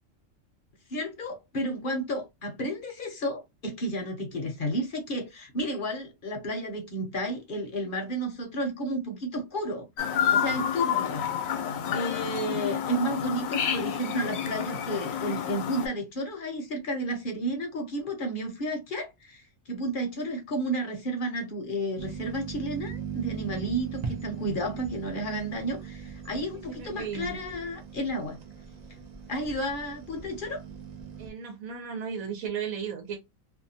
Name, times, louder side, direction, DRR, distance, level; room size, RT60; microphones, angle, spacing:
voice 1, 0.9-11.2 11.9-28.4 29.3-30.6, right 1 dB, 50° left, 0.7 m, -32 dB
Chirp tweet, 10.0-15.9, left 9 dB, 80° left, 1.0 m, -29 dB
sound 1, 22.0-31.3, right 6 dB, 55° right, 0.4 m, -40 dB
voice 2, 26.7-27.3 31.2-33.2, right 7 dB, 85° right, 1.1 m, -35 dB
2.6 x 2.2 x 2.7 m
omnidirectional pair, 1.4 m